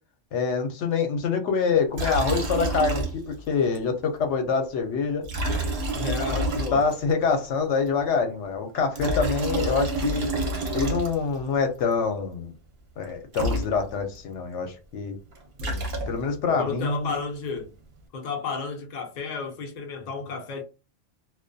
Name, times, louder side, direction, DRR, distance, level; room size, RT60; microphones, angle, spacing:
voice 1, 0.3-5.2 6.3-6.4 6.7-10.3 10.7-12.5 13.0-15.2 16.1-17.1, left 5 dB, 75° left, 0.9 m, -25 dB
Liquid, 1.9-3.5 3.7-3.8 5.2-7.1 8.7-11.4 13.0-13.1 13.3-14.2 15.3-16.4, right 2 dB, 60° right, 0.9 m, -28 dB
voice 2, 5.9-6.9 15.6-15.9 16.5-17.7 18.1-20.6, left 4 dB, 50° left, 0.5 m, -32 dB
2.3 x 2.2 x 2.5 m
omnidirectional pair, 1.2 m